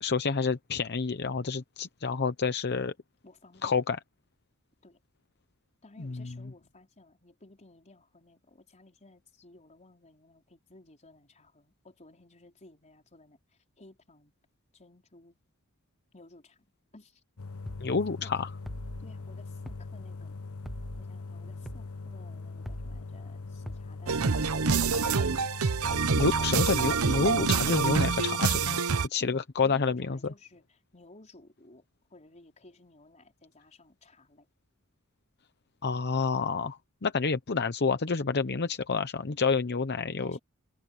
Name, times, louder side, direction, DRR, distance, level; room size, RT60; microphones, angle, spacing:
voice 1, 0.0-2.9 3.6-4.0 6.0-6.3 17.8-18.5 26.2-28.8 29.1-30.2 35.8-40.4, left 4 dB, 50° left, 0.8 m, -29 dB
voice 2, 3.2-3.8 4.8-5.0 5.8-13.4 13.8-14.3 14.7-15.4 16.1-16.7 16.9-17.2 17.8-18.4 19.0-20.4 21.0-25.3 29.2-31.8 32.1-34.5 40.2-40.4, left 2 dB, 35° left, 4.8 m, -55 dB
sound 1, 17.4-28.4, left 3 dB, 75° left, 1.1 m, -41 dB
sound 2, 17.7-17.9 18.6-19.0 19.7-19.9 20.6-21.0 21.7-21.9 22.6-23.0 23.7-23.9 24.6-25.0, equal, ahead, 0.7 m, -41 dB
sound 3, 24.1-29.1, right 5 dB, 75° right, 0.9 m, -26 dB
head